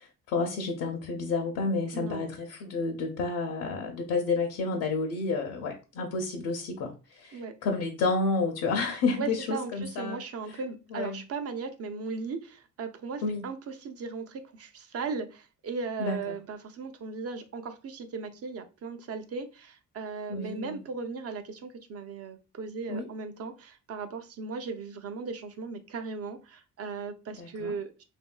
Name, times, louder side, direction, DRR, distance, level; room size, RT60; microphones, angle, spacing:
voice 1, 0.3-10.2 10.5-10.6 10.9-11.2 13.2-13.5 16.0-16.3 20.3-20.8 22.9-23.1 27.4-27.7, left 3 dB, 85° left, 0.6 m, -30 dB
voice 2, 1.9-2.3 7.3-7.5 9.2-28.0, right 4 dB, 50° right, 0.5 m, -37 dB
3.0 x 2.6 x 2.2 m
cardioid pair, 90°, 30 cm